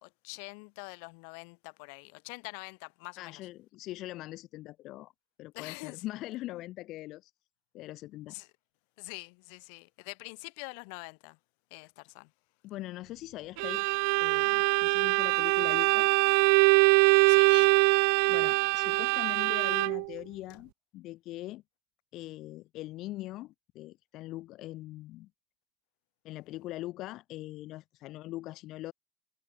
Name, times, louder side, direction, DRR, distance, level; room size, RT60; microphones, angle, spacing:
voice 1, 0.0-3.4 5.5-6.0 8.3-8.5 9.0-11.4 11.7-12.3 17.3-17.7, left 40 dB or more, 80° left, 2.3 m, -45 dB
voice 2, 3.2-5.1 5.4-7.3 7.7-8.3 11.8-11.9 12.6-13.9 14.2-16.1 18.3-21.6 22.1-25.3 26.2-28.9, left 17 dB, 55° left, 0.6 m, -41 dB
Bowed string instrument, 13.6-20.1, right 40 dB or more, 80° right, 0.4 m, -23 dB
cardioid pair, 140°, 0 cm